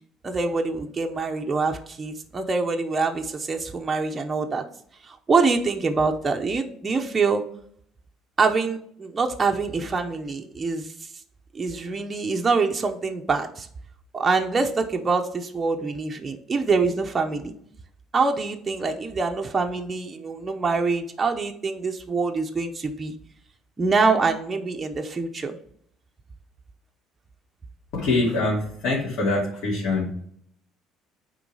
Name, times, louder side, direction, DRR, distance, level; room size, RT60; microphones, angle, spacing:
voice 1, 0.2-4.6 5.0-7.4 8.4-10.9 11.5-13.7 14.1-17.5 18.1-23.1 23.8-25.6, right 4 dB, 15° right, 3 dB, 0.7 m, -25 dB
voice 2, 27.9-30.2, left 2 dB, 60° left, -6 dB, 2.6 m, -24 dB
9.3 x 3.8 x 4.8 m, 0.65 s
cardioid pair, 165°, 0 cm